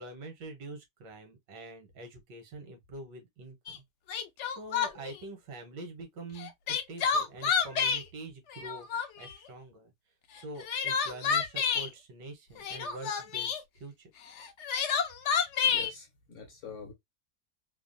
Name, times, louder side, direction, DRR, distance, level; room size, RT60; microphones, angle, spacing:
voice 1, 0.0-3.8 4.5-8.9 9.2-9.9 10.3-14.1, right 2 dB, 85° right, 1.5 m, -45 dB
Crying sobbing, 3.7-3.8 4.1-5.2 6.4-8.0 8.5-9.3 10.4-11.9 12.6-13.6 14.4-15.9, left 6 dB, 85° left, 0.6 m, -29 dB
voice 2, 15.7-16.9, left 6 dB, 60° left, 0.9 m, -45 dB
3.3 x 2.0 x 2.5 m
omnidirectional pair, 1.8 m